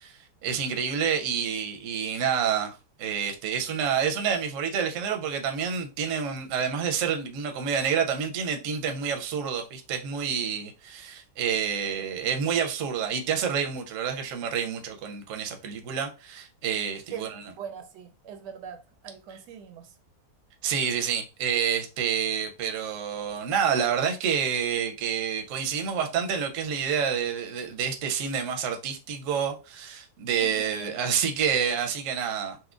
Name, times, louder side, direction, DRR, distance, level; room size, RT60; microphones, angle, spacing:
voice 1, 0.0-2.7 3.0-17.4 19.3-19.4 20.6-32.7, right 7 dB, 65° right, 0.8 m, -28 dB
voice 2, 17.1-19.9 30.4-31.0, right 7 dB, 85° right, 1.2 m, -42 dB
4.2 x 2.1 x 2.4 m
omnidirectional pair, 1.8 m